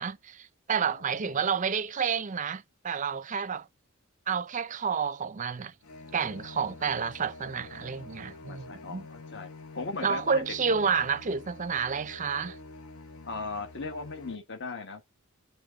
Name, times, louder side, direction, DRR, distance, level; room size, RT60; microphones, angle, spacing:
voice 1, 0.0-3.7 4.3-5.7 6.1-9.0 10.0-12.6, right 6 dB, 35° right, 0.5 m, -30 dB
voice 2, 0.9-1.5 8.5-9.5 9.7-10.4 13.3-15.0, left 3 dB, 55° left, 1.3 m, -38 dB
sound 1, 5.8-14.3, left 3 dB, 80° left, 1.0 m, -47 dB
8.2 x 3.5 x 3.8 m
head